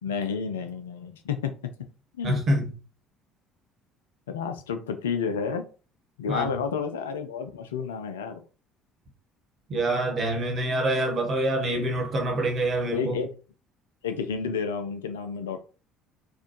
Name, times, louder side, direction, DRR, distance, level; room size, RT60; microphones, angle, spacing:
voice 1, 0.0-1.5 2.2-2.4 4.3-5.6 6.2-8.4 12.9-13.3 14.0-15.6, left 6 dB, 70° left, 0.4 m, -30 dB
voice 2, 2.2-2.7 6.3-6.5 9.7-13.2, right 1 dB, 40° right, 1.3 m, -26 dB
4.2 x 2.5 x 3.0 m
figure-of-eight pair, 55°, 0 cm